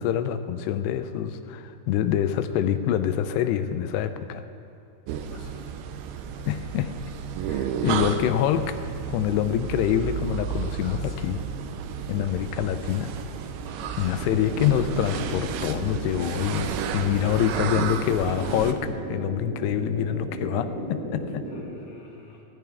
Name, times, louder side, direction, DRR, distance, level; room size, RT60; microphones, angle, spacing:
voice 1, 0.0-4.4 6.5-6.9 7.5-8.8 9.1-11.4 12.1-13.1 14.0-21.5, left 10 dB, 85° left, 10 dB, 2.8 m, -26 dB
sound 1, 5.1-18.7, right 7 dB, 80° right, 2.5 m, -32 dB
voice 2, 5.3-5.6 6.3-6.7 7.6-8.3 10.8-11.4 13.8-14.3 21.5-22.4, left 3 dB, 30° left, -7 dB, 3.1 m, -49 dB
sound 2, 14.2-21.6, right 1 dB, 30° right, 2.9 m, -35 dB
18.0 x 14.5 x 3.4 m, 2.6 s
omnidirectional pair, 4.7 m